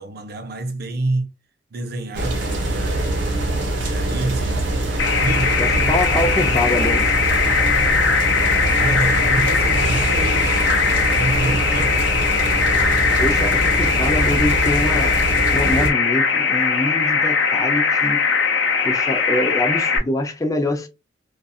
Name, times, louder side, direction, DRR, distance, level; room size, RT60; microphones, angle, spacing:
voice 1, 0.0-1.3 1.7-3.2 3.8-6.3 8.7-12.2, right 2 dB, 60° right, 0.6 m, -28 dB
sound 1, 2.1-15.9, right 2 dB, 85° right, 0.9 m, -23 dB
sound 2, 5.0-20.0, left 5 dB, 75° left, 0.6 m, -20 dB
voice 2, 5.6-7.1 13.2-15.2 15.5-18.2 18.8-20.9, left 1 dB, 20° left, 0.5 m, -24 dB
2.6 x 2.3 x 2.3 m
head